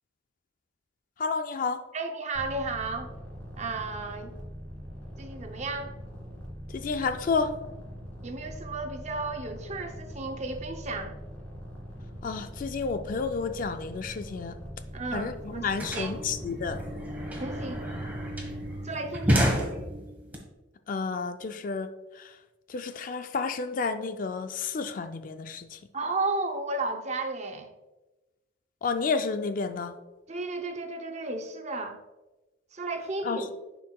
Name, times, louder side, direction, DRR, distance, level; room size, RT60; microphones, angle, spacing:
voice 1, 1.2-1.8 6.7-7.6 12.2-14.6 15.1-16.8 20.9-21.9 22.2-22.3 22.7-25.8 28.8-29.9 33.2-33.4, left 4 dB, 45° left, 9 dB, 0.4 m, -30 dB
voice 2, 1.9-3.1 3.6-4.3 5.2-5.9 8.2-11.2 14.9-16.2 17.4-17.8 18.8-19.5 25.9-27.7 30.3-32.0 32.7-33.5, right 3 dB, 35° right, 5 dB, 0.6 m, -33 dB
sound 1, 2.3-18.8, equal, 10° left, 1.8 m, -42 dB
sound 2, 14.9-15.0 15.2-20.4, equal, 10° right, 1.2 m, -30 dB
10.5 x 4.7 x 2.3 m, 1.1 s
head